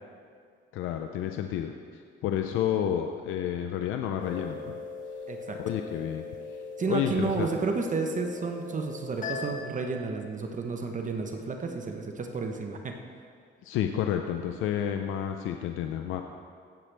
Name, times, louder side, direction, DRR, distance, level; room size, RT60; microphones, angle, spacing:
voice 1, 0.7-4.8 5.6-6.2 6.9-7.5 13.6-16.2, left 10 dB, 90° left, 5 dB, 0.5 m, -30 dB
sound 1, 4.2-9.6, left 4 dB, 40° left, 1.7 m, -40 dB
voice 2, 5.3-5.6 6.8-13.0, right 4 dB, 40° right, 3 dB, 0.9 m, -31 dB
16.0 x 7.5 x 3.4 m, 2.2 s
cardioid pair, 90°, 20 cm